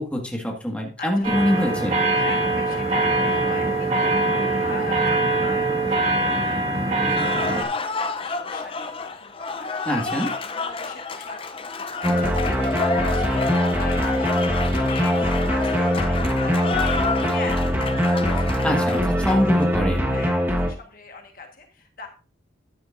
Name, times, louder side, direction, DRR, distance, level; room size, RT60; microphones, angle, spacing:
voice 1, 0.0-2.0 9.9-10.3 18.6-20.1, left 1 dB, 5° left, 0 dB, 1.7 m, -24 dB
voice 2, 1.0-1.3 2.1-4.3 4.6-9.7 10.2-11.4 11.8-14.3 14.7-17.7 18.0-19.0 20.1-22.1, left 4 dB, 50° left, 4 dB, 1.5 m, -39 dB
sound 1, 1.2-7.6, right 2 dB, 35° right, 1.8 m, -22 dB
Cheering / Applause, 7.1-19.7, left 4 dB, 30° left, 0.6 m, -30 dB
sound 2, 12.0-20.7, equal, 10° right, 1.3 m, -22 dB
12.0 x 9.5 x 2.6 m, 0.34 s
head